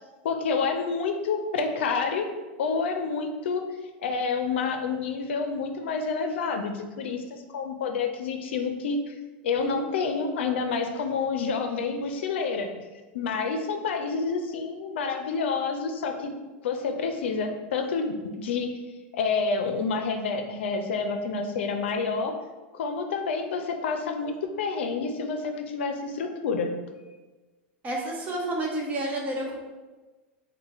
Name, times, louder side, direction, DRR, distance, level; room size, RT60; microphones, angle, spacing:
voice 1, 0.2-2.3 2.6-3.6 4.0-9.1 9.4-12.7 13.1-16.3 16.6-18.7 19.1-22.3 22.7-26.7, left 4 dB, 85° left, 6 dB, 0.4 m, -28 dB
voice 2, 27.8-29.6, right 1 dB, 25° right, -2 dB, 0.9 m, -30 dB
4.1 x 2.1 x 3.8 m, 1.2 s
supercardioid pair, 125°, 6 cm